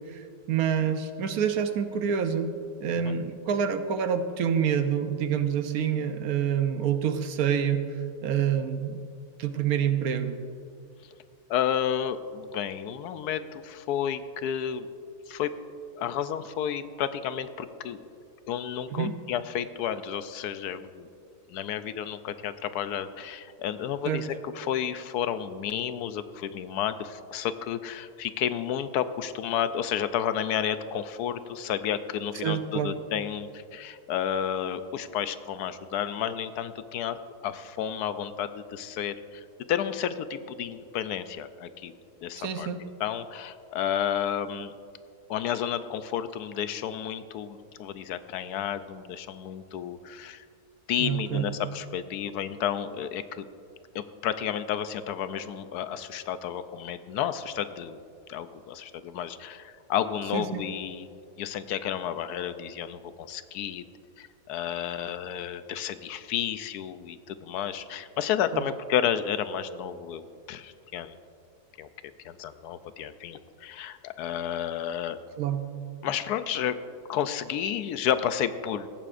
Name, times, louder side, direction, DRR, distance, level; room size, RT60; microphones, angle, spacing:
voice 1, 0.5-2.5 2.8-7.8 8.2-9.0 9.4-10.4 18.9-19.1 24.1-24.3 32.4-33.0 42.4-42.8 51.0-51.5 60.3-60.6 68.5-68.6 75.4-75.7, right 8 dB, 70° right, 8 dB, 1.2 m, -27 dB
voice 2, 11.5-14.9 15.3-15.6 15.9-18.0 18.5-21.1 21.5-41.9 42.2-44.7 45.3-50.4 50.9-53.4 53.9-58.0 58.3-61.1 61.4-63.8 64.2-71.2 71.8-71.9 72.2-75.2 76.0-76.8 77.1-78.9, left 9 dB, 80° left, 12 dB, 1.1 m, -31 dB
17.5 x 14.5 x 2.5 m, 2.4 s
omnidirectional pair, 1.7 m